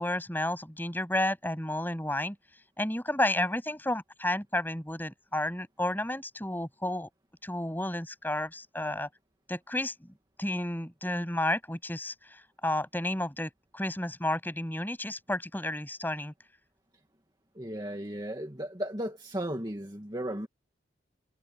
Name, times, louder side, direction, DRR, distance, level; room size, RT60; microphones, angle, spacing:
voice 1, 0.0-2.4 2.8-7.1 7.4-9.1 9.5-10.1 10.4-12.1 12.6-16.3, left 1 dB, 10° left, 7.7 m, -31 dB
voice 2, 17.6-20.5, right 1 dB, 20° right, 2.1 m, -35 dB
head